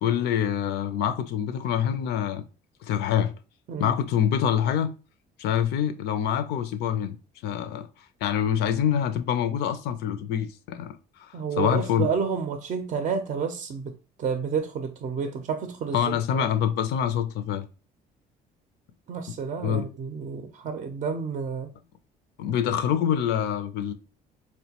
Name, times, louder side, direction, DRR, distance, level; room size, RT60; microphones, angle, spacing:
voice 1, 0.0-2.4 2.8-3.3 3.8-4.9 5.4-7.2 7.4-7.9 8.2-12.1 15.9-17.7 19.6-19.9 22.4-23.9, left 9 dB, 80° left, 0.5 m, -26 dB
voice 2, 11.3-13.9 14.2-16.4 19.1-21.7, right 6 dB, 45° right, 0.5 m, -30 dB
4.3 x 2.2 x 2.8 m
cardioid pair, 110°, 17 cm